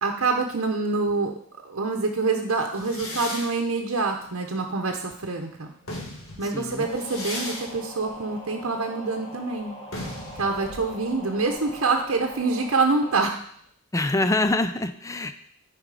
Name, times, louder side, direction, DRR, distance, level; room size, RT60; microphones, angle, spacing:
voice 1, 0.0-1.3 1.6-5.7 6.4-9.7 10.4-13.4, right 3 dB, 80° right, 2 dB, 0.9 m, -26 dB
sound 1, 2.7-5.2 5.6-13.2, left 1 dB, 75° left, 1.9 m, -39 dB
voice 2, 6.5-6.9 13.9-15.3, left 2 dB, 15° left, 10 dB, 0.4 m, -25 dB
sound 2, 6.8-13.2, equal, 50° left, 2.8 m, -42 dB
8.8 x 5.1 x 4.9 m, 0.64 s
head